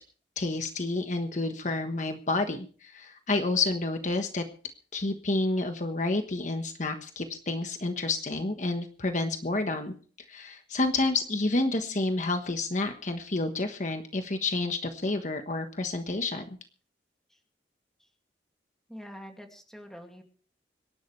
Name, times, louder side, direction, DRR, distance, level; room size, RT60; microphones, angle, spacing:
voice 1, 0.4-4.4 4.9-9.9 10.3-16.4, left 2 dB, 45° left, 6 dB, 1.3 m, -29 dB
voice 2, 18.9-20.2, equal, 5° left, 3 dB, 2.4 m, -45 dB
26.0 x 11.5 x 3.3 m, 0.41 s
head